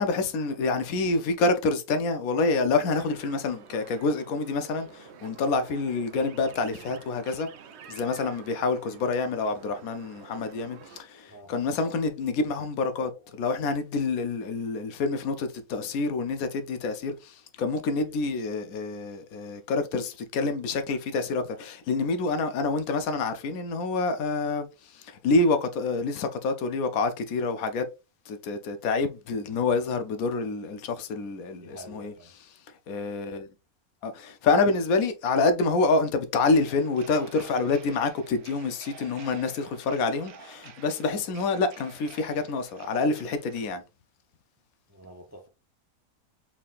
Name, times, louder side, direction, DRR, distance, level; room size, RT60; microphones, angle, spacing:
voice 1, 0.0-7.5 7.9-27.9 28.3-32.1 32.9-33.5 34.0-43.8, left 3 dB, 75° left, 1.1 m, -27 dB
sound 1, 2.9-11.0, right 7 dB, 65° right, 0.7 m, -49 dB
voice 2, 31.6-32.4 44.9-45.5, right 1 dB, 25° right, 0.3 m, -47 dB
sound 2, 36.5-43.7, right 7 dB, 90° right, 1.2 m, -50 dB
4.3 x 3.7 x 2.4 m
omnidirectional pair, 1.5 m